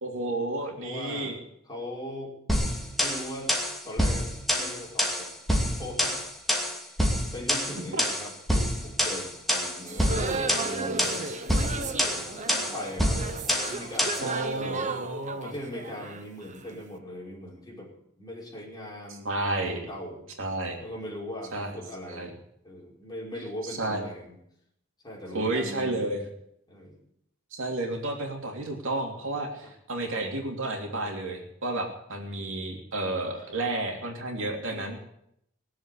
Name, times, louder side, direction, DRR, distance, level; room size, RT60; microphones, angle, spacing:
voice 1, 0.0-1.4 7.9-8.0 14.2-15.5 19.2-19.9 20.4-20.8 21.5-21.7 22.1-22.3 23.7-24.0 25.3-26.2 27.5-35.0, right 2 dB, 65° right, 1 dB, 2.9 m, -31 dB
voice 2, 0.8-1.4 1.6-2.3 3.0-3.5 3.8-5.3 5.6-6.2 7.3-11.3 11.9-13.2 13.6-15.0 15.4-17.9 18.2-19.2 19.6-20.3 20.8-22.4 22.6-24.4 25.0-26.3 26.7-27.0 29.6-29.7 33.4-33.5 34.7-34.9, left 1 dB, 20° left, -3 dB, 5.4 m, -40 dB
sound 1, 2.5-14.3, equal, ahead, 2.7 m, -27 dB
sound 2, 9.8-16.8, right 3 dB, 35° right, 1.1 m, -34 dB
20.5 x 7.7 x 8.5 m, 0.76 s
head